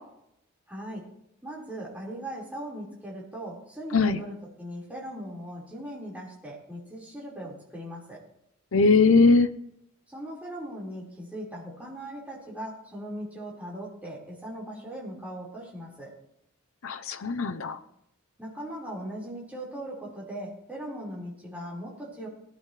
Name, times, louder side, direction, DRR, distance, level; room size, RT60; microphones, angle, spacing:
voice 1, 0.7-1.1 1.4-8.2 10.1-16.1 18.4-22.3, right 1 dB, 10° right, -6 dB, 4.8 m, -39 dB
voice 2, 8.7-9.5 16.8-17.8, left 4 dB, 80° left, 7 dB, 0.7 m, -20 dB
20.0 x 11.0 x 3.3 m, 0.75 s
head